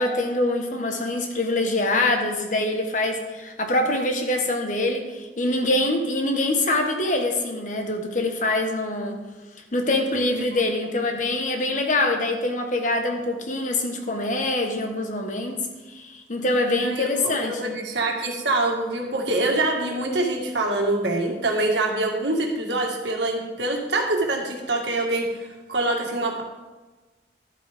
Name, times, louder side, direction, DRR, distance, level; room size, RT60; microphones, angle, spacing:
voice 1, 0.0-9.2 9.7-15.6 15.9-17.8, left 2 dB, 45° left, 3 dB, 1.2 m, -24 dB
voice 2, 16.7-26.4, right 2 dB, 85° right, 1 dB, 1.8 m, -25 dB
11.5 x 8.5 x 3.5 m, 1.2 s
head